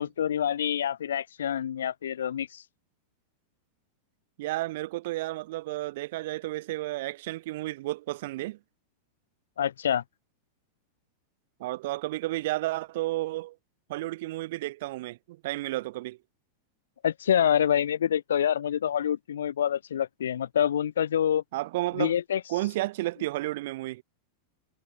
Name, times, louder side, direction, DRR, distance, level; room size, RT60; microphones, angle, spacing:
voice 1, 0.0-2.6 9.6-10.0 17.0-21.4 22.0-22.4, left 9 dB, 65° left, 1.7 m, -26 dB
voice 2, 4.4-8.6 11.6-13.6 13.9-16.2 21.5-22.2 22.5-24.0, right 18 dB, 50° right, 2.3 m, -32 dB
figure-of-eight pair, 90°, 0 cm